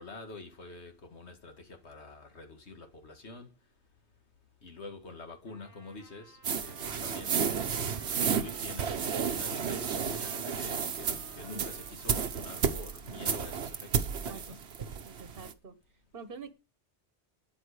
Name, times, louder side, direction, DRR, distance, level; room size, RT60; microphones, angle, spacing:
voice 1, 0.0-3.5 4.6-7.3 7.7-14.6, left 2 dB, 80° left, 2.2 m, -47 dB
Trumpet, 5.5-13.2, right 1 dB, 15° left, 7.6 m, -56 dB
sound 1, 6.4-15.5, right 6 dB, 70° right, 1.2 m, -32 dB
voice 2, 14.8-15.7 16.1-16.5, right 4 dB, 55° right, 1.4 m, -46 dB
13.0 x 9.7 x 5.0 m
omnidirectional pair, 1.1 m